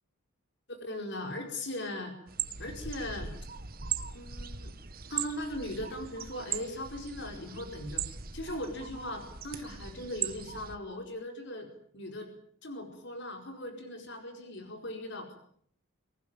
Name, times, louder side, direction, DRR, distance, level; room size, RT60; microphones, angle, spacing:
voice 1, 0.7-2.1 2.6-3.3 4.1-4.7 5.1-8.0 8.3-11.7 11.9-12.3 12.6-15.4, left 1 dB, 55° left, 4 dB, 4.8 m, -39 dB
sound 1, 2.3-10.8, right 8 dB, 45° right, 1.6 m, -39 dB
25.0 x 19.5 x 9.0 m, 0.64 s
head